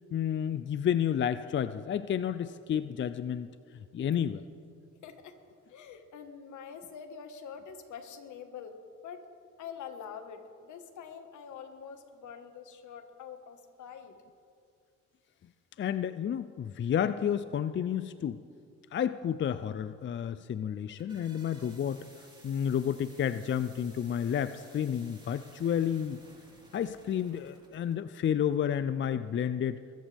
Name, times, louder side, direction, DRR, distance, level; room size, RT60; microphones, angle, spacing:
voice 1, 0.1-3.5 3.9-4.4 15.8-18.4 18.9-22.0 22.4-26.2 26.7-29.8, left 9 dB, 40° left, 12 dB, 0.5 m, -31 dB
voice 2, 5.0-5.4 5.7-9.3 9.6-14.1, left 7 dB, 75° left, 6 dB, 1.6 m, -45 dB
sound 1, 20.8-28.0, right 2 dB, 15° right, 4.0 m, -57 dB
23.5 x 14.0 x 3.5 m, 2.3 s
cardioid pair, 90°, 30 cm